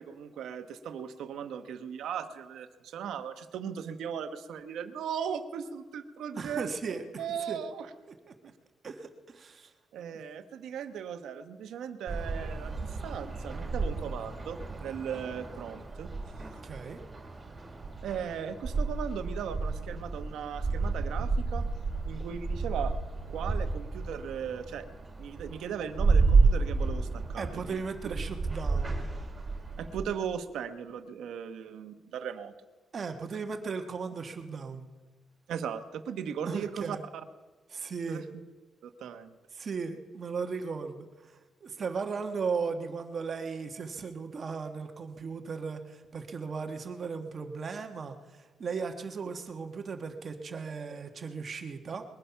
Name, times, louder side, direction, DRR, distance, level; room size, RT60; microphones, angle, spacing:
voice 1, 0.0-6.7 7.2-7.9 9.9-16.1 18.0-21.7 22.0-23.0 23.3-24.9 25.2-27.8 29.8-32.5 35.5-37.2 38.1-38.2 38.8-39.3, right 8 dB, 85° right, 9 dB, 1.1 m, -37 dB
voice 2, 6.3-7.6 8.8-9.7 16.6-17.0 27.4-29.1 32.9-34.9 36.4-37.0 37.7-38.2 39.5-41.3 41.6-48.2 48.6-52.0, right 5 dB, 40° right, 6 dB, 1.3 m, -36 dB
sound 1, 12.1-30.0, right 3 dB, 20° right, 2.6 m, -31 dB
21.0 x 11.5 x 5.8 m, 1.3 s
cardioid pair, 155°, 0 cm